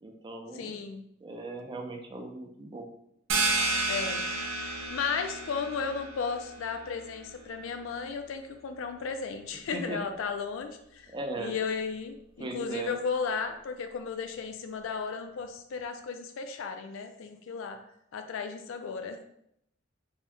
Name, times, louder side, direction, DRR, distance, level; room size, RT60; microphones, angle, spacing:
voice 1, 0.0-0.7 1.2-2.9 9.7-10.1 11.1-11.6 12.4-12.9, right 2 dB, 25° right, 3 dB, 0.4 m, -38 dB
voice 2, 0.5-1.0 3.9-4.2 4.9-17.8 18.1-19.2, left 5 dB, 75° left, 7 dB, 0.4 m, -35 dB
sound 1, 3.3-8.7, right 3 dB, 75° right, 0.6 m, -32 dB
2.7 x 2.1 x 3.5 m, 0.75 s
head